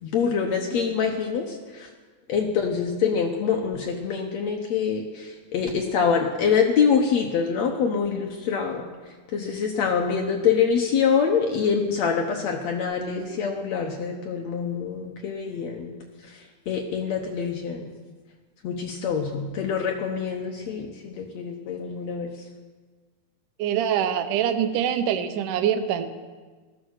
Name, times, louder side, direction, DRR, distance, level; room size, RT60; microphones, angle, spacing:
voice 1, 0.0-1.9 2.3-8.8 9.3-16.0 16.7-17.8 18.6-22.3, left 6 dB, 75° left, 2 dB, 1.6 m, -25 dB
voice 2, 23.6-26.1, right 9 dB, 70° right, 9 dB, 2.1 m, -24 dB
16.0 x 12.5 x 6.5 m, 1.4 s
omnidirectional pair, 4.6 m